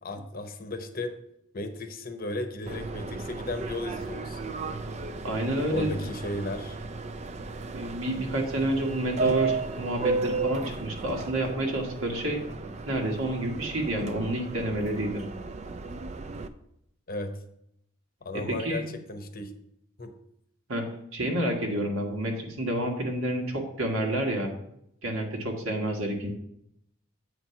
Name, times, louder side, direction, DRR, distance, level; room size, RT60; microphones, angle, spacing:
voice 1, 0.0-1.1 1.5-4.4 5.7-6.8 17.1-17.4 18.2-18.8 19.1-19.6 20.0-20.1, left 2 dB, 45° left, 7 dB, 0.8 m, -34 dB
Subway metro underground, 2.7-16.5, right 4 dB, 30° right, 0.4 m, -34 dB
voice 2, 5.2-6.0 7.7-12.4 12.9-15.2 18.3-18.8 20.7-20.8 21.1-24.5 25.0-26.3, right 1 dB, 70° right, 0 dB, 1.5 m, -29 dB
8.0 x 4.5 x 5.7 m, 0.75 s
head